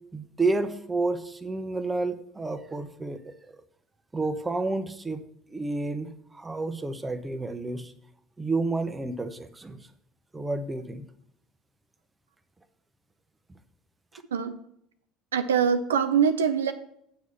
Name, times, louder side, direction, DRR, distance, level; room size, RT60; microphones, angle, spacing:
voice 1, 0.1-3.3 4.1-5.2 5.5-7.9 8.4-9.8 10.3-11.0, right 3 dB, 15° right, 9 dB, 1.0 m, -30 dB
voice 2, 15.3-16.7, right 7 dB, 80° right, 9 dB, 0.5 m, -23 dB
8.0 x 4.9 x 6.9 m, 0.74 s
figure-of-eight pair, 65°, 0 cm